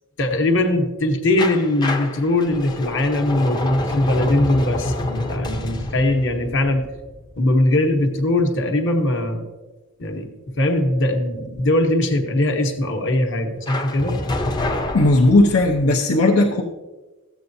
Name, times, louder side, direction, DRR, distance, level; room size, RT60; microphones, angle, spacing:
voice 1, 0.2-6.9 7.4-9.4 10.0-14.2, left 1 dB, 60° left, 4 dB, 1.2 m, -20 dB
sound 1, 1.4-8.2 13.7-15.9, left 1 dB, 20° left, 0.6 m, -28 dB
voice 2, 14.9-16.6, left 2 dB, 80° left, 0 dB, 0.8 m, -16 dB
14.0 x 8.3 x 2.7 m, 1.2 s
head